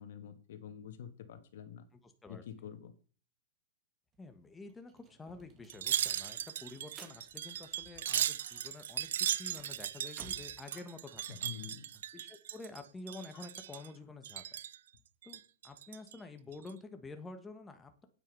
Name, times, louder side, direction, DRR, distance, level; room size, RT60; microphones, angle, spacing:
voice 1, 0.0-1.8 2.3-2.9 11.3-11.8, left 9 dB, 65° left, 10 dB, 1.8 m, -47 dB
voice 2, 2.0-2.4 4.2-11.5 12.1-14.4 15.2-18.1, left 3 dB, 10° left, 7 dB, 1.5 m, -49 dB
sound 1, 4.1-4.2 4.5-8.4 8.7-10.6, right 4 dB, 25° right, 2.1 m, -57 dB
Wind chime, 5.7-12.8 13.1-13.9 14.2-14.8 15.2-16.1 16.5-16.7, right 11 dB, 70° right, 0.5 m, -37 dB
Animal, 8.1-9.3 10.0-10.1 10.6-11.6 13.0-13.1 13.3-14.3, left 6 dB, 35° left, 2.7 m, -65 dB
9.0 x 8.9 x 5.5 m, 0.41 s
hypercardioid pair, 130°, 0 cm